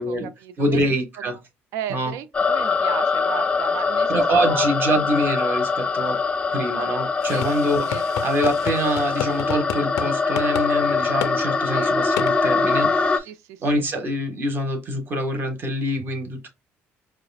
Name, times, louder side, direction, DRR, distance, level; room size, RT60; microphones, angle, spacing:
voice 1, 0.0-0.9 1.2-1.4 1.7-4.7 7.3-7.4 7.9-8.0 11.7-12.0 13.2-13.8, right 9 dB, 80° right, 0.4 m, -35 dB
voice 2, 0.6-1.4 1.9-2.1 4.1-6.2 6.5-7.9 8.2-13.3 13.6-16.5, right 1 dB, 40° right, 1.3 m, -25 dB
sound 1, 2.3-13.2, left 4 dB, 20° left, 0.5 m, -23 dB
sound 2, 7.2-10.1 10.4-10.7 11.2-11.3 12.2-12.3, left 9 dB, 85° left, 0.4 m, -31 dB
4.8 x 2.4 x 2.3 m
cardioid pair, 100°, 5 cm